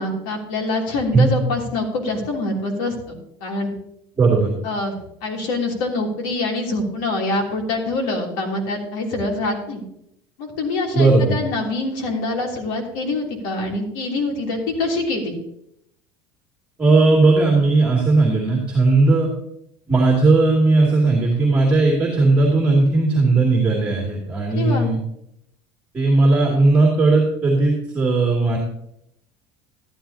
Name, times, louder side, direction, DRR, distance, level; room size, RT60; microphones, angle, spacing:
voice 1, 0.0-3.7 4.6-4.9 5.2-9.8 10.4-15.3 24.5-24.9, left 2 dB, 90° left, 0 dB, 3.1 m, -25 dB
voice 2, 4.2-4.5 10.9-11.3 16.8-19.3 19.9-25.0 25.9-28.6, right 3 dB, 15° right, -2 dB, 2.6 m, -17 dB
13.0 x 12.5 x 2.8 m, 0.76 s
cardioid pair, 155°, 10 cm